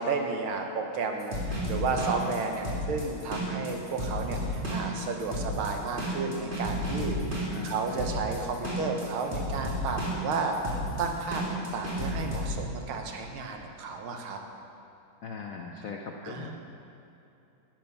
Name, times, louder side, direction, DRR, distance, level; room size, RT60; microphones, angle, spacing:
voice 1, 0.0-14.4 16.2-16.5, right 4 dB, 85° right, 3 dB, 1.8 m, -32 dB
sound 1, 1.2-12.5, equal, 25° right, 2.4 m, -32 dB
voice 2, 7.5-8.1 15.2-16.5, left 5 dB, 75° left, 1 dB, 0.7 m, -40 dB
12.0 x 8.9 x 5.4 m, 2.8 s
omnidirectional pair, 2.3 m